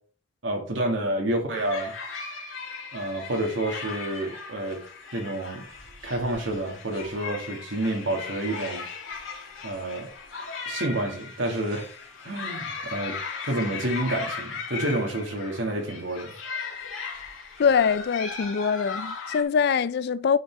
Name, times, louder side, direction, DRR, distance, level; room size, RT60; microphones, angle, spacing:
voice 1, 0.4-1.9 2.9-4.8 5.1-5.6 6.0-8.8 9.6-10.1 10.7-11.9 12.2-13.2 13.5-16.3, right 1 dB, 70° right, 2.0 m, -29 dB
sound 1, 1.5-19.4, left 4 dB, 90° left, 2.5 m, -37 dB
voice 2, 17.6-20.4, left 6 dB, 55° left, 0.3 m, -23 dB
9.9 x 5.4 x 3.4 m
head